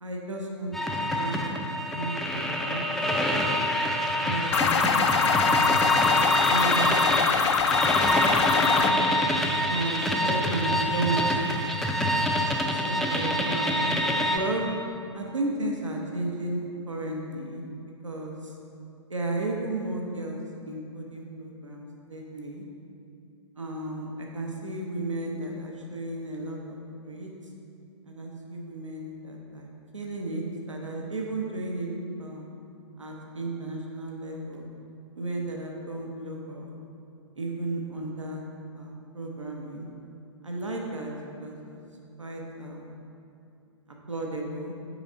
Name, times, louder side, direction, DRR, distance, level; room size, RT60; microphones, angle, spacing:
voice 1, 0.0-2.9 4.2-5.2 6.5-7.4 9.7-11.3 12.7-13.9 14.3-14.6 15.1-17.6 18.0-18.5 19.1-22.6 23.6-26.8 27.0-27.3 28.1-29.7 29.9-31.9 32.2-32.5 33.0-34.7 35.1-36.8 37.4-38.5 38.7-39.9 40.4-41.1 41.4-41.8 42.2-42.9 44.1-44.7, right 2 dB, 85° right, 0 dB, 0.8 m, -34 dB
sound 1, 0.7-14.4, equal, ahead, 0.4 m, -26 dB
sound 2, 4.5-8.9, left 6 dB, 65° left, 0.4 m, -24 dB
6.0 x 5.0 x 3.9 m, 2.6 s
figure-of-eight pair, 110°, 16 cm